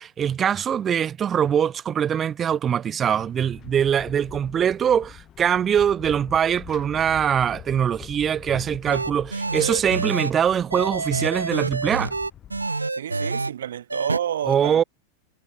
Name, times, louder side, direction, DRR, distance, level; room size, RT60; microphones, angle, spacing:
voice 1, 0.0-12.1 14.5-14.8, right 8 dB, 25° right, 0.5 m, -23 dB
sound 1, 3.2-12.7, left 10 dB, 30° left, 5.1 m, -44 dB
sound 2, 8.9-10.3 10.7-13.5 13.9-14.2, right 3 dB, 80° right, 0.6 m, -27 dB
voice 2, 12.9-14.8, right 10 dB, 60° right, 2.6 m, -30 dB
figure-of-eight pair, 90°, 0 cm